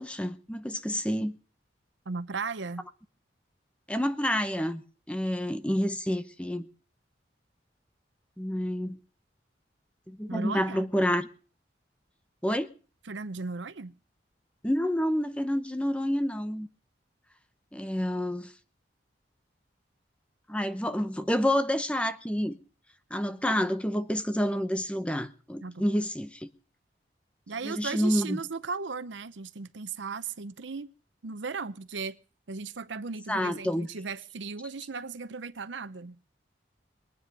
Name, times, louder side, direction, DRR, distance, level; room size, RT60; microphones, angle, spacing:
voice 1, 0.0-1.3 3.9-4.8 5.1-6.7 8.4-9.0 10.1-11.3 12.4-12.7 14.6-16.7 17.7-18.5 20.5-22.6 23.1-26.5 27.6-28.4 33.3-33.9, equal, 5° left, 0.8 m, -28 dB
voice 2, 2.1-2.9 10.3-10.9 13.1-14.0 25.6-25.9 27.5-30.9 31.2-32.2 32.5-36.2, right 4 dB, 90° right, 0.8 m, -36 dB
22.5 x 9.3 x 5.3 m
head